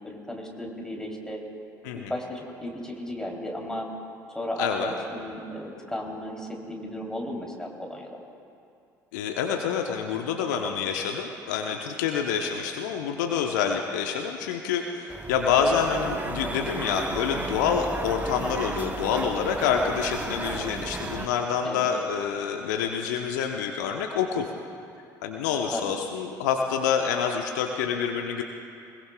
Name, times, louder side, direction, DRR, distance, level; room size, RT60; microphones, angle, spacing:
voice 1, 0.0-1.4 1.9-3.9 4.3-8.2 21.6-21.9 25.7-25.9, left 1 dB, 5° left, -1 dB, 3.1 m, -35 dB
voice 2, 4.6-4.9 9.1-24.5 25.2-28.4, left 7 dB, 70° left, 3 dB, 0.9 m, -27 dB
sound 1, 15.1-21.3, right 3 dB, 20° right, 0.9 m, -34 dB
21.0 x 21.0 x 2.3 m, 2.5 s
figure-of-eight pair, 60°, 10 cm